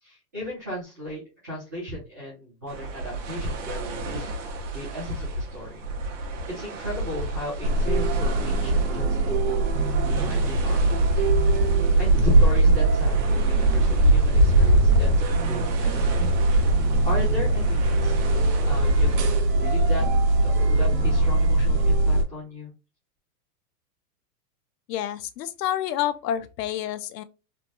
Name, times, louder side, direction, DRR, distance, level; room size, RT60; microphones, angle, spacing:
voice 1, 0.0-5.8 6.5-11.3 12.0-16.0 17.0-18.2 18.6-20.1 20.4-22.7, equal, 10° right, 0.4 m, -35 dB
sound 1, 2.7-19.4, equal, 50° right, 0.7 m, -27 dB
sound 2, 7.6-22.2, right 2 dB, 85° right, 1.0 m, -22 dB
voice 2, 24.9-27.2, left 11 dB, 85° left, 0.6 m, -28 dB
3.2 x 2.1 x 2.5 m
supercardioid pair, 175°, 48 cm